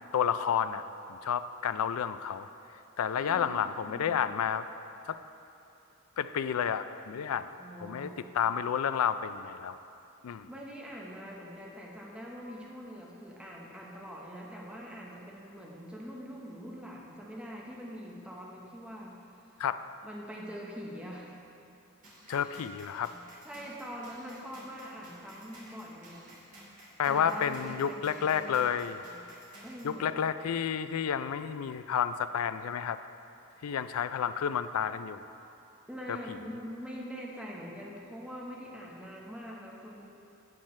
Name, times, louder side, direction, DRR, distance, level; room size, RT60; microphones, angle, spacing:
voice 1, 0.1-0.8 1.1-2.5 3.0-4.7 5.1-5.2 6.2-7.5 7.8-8.1 8.3-9.8 10.2-10.5 19.6-19.8 22.3-23.1 27.0-29.0 29.8-33.0 33.6-35.2 36.1-36.4, left 8 dB, 80° left, 12 dB, 0.4 m, -30 dB
voice 2, 3.1-4.3 7.6-8.2 10.5-19.2 20.0-21.4 22.2-22.5 23.4-26.3 27.1-28.6 29.6-30.2 35.9-40.1, equal, 5° right, -3 dB, 1.0 m, -44 dB
sound 1, 22.0-29.9, right 1 dB, 40° right, 2.1 m, -53 dB
12.0 x 8.8 x 3.2 m, 2.8 s
head